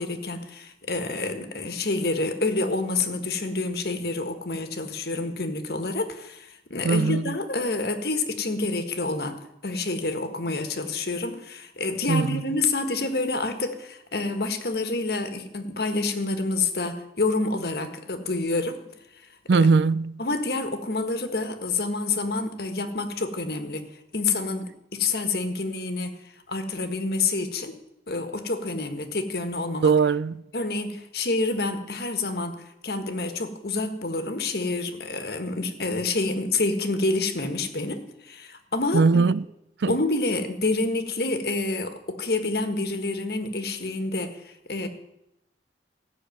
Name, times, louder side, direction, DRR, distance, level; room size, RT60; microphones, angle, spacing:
voice 1, 0.0-18.8 20.2-26.2 26.5-27.8 28.1-29.9 30.5-39.3 39.9-44.9, left 3 dB, 60° left, 1.5 m, -28 dB
voice 2, 6.8-7.3 12.1-12.4 19.5-20.2 29.8-30.4 38.9-39.4 39.8-40.0, right 4 dB, 75° right, 0.4 m, -20 dB
16.0 x 6.5 x 9.3 m
head